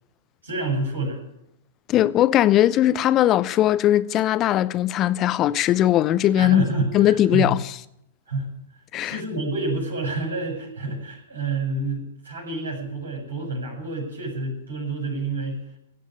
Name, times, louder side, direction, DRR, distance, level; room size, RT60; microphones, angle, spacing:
voice 1, 0.4-1.2 6.4-7.5 8.3-8.5 9.0-15.6, right 3 dB, 80° right, 6.7 m, -28 dB
voice 2, 1.9-6.6 6.9-7.7 8.9-9.2, left 12 dB, 30° left, 0.7 m, -19 dB
17.0 x 7.5 x 9.9 m
figure-of-eight pair, 105°, 0 cm